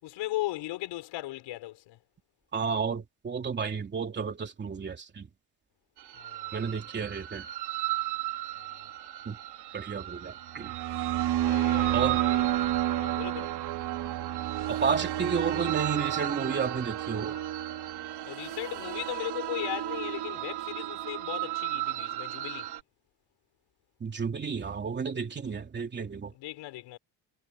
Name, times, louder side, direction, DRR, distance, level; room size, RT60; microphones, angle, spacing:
voice 1, 0.0-2.0 6.1-6.8 8.6-8.9 11.3-12.5 13.0-13.5 18.2-22.7 26.3-27.0, left 16 dB, 90° left, 6.6 m, -37 dB
voice 2, 2.5-5.3 6.5-7.5 9.2-9.4 9.7-10.7 11.9-12.2 14.7-17.4 24.0-26.3, right 6 dB, 25° right, 3.0 m, -32 dB
sound 1, 6.0-22.8, right 14 dB, 65° right, 4.3 m, -32 dB
cardioid pair, 170°, 43 cm